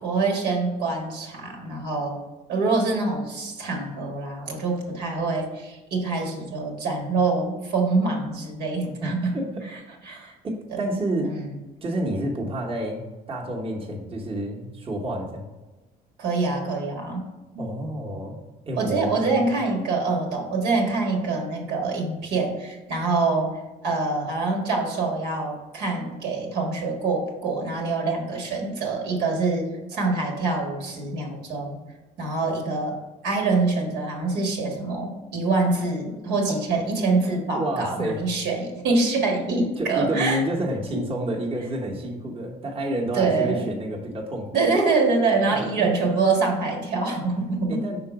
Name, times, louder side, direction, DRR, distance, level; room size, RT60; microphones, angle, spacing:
voice 1, 0.0-2.2 2.5-9.3 10.0-10.3 10.7-11.5 16.2-17.3 17.5-17.8 18.8-23.5 23.8-31.8 32.2-33.0 33.2-40.4 40.9-41.0 43.1-43.7 44.5-47.8, right 3 dB, 80° right, 1 dB, 1.5 m, -25 dB
voice 2, 9.0-9.5 10.4-11.3 11.8-13.0 13.3-15.5 17.6-18.4 18.7-19.4 36.5-36.6 37.5-38.2 39.8-44.5 45.5-45.9 47.7-48.0, right 1 dB, 30° right, -2 dB, 1.1 m, -29 dB
5.7 x 3.8 x 4.8 m, 1.1 s
cardioid pair, 110°, 17 cm